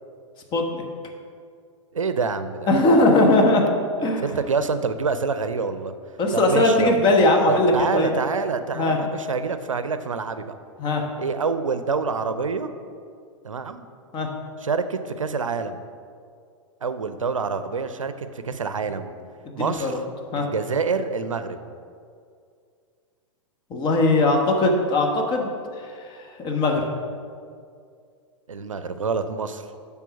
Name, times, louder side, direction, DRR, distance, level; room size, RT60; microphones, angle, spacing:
voice 1, 0.5-0.8 2.7-3.6 4.0-4.3 6.2-8.1 8.7-9.0 10.8-11.0 14.1-14.3 19.5-20.0 20.3-20.5 23.7-25.9 26.2-26.9, left 2 dB, 30° left, 2 dB, 1.2 m, -20 dB
voice 2, 1.9-2.8 4.2-5.9 6.3-6.9 7.5-10.5 11.2-12.7 13.4-13.9 14.6-15.8 16.8-19.1 19.5-20.0 20.3-21.6 28.5-29.6, right 5 dB, 85° right, 11 dB, 0.5 m, -27 dB
10.5 x 3.6 x 5.8 m, 2.2 s
figure-of-eight pair, 105°, 16 cm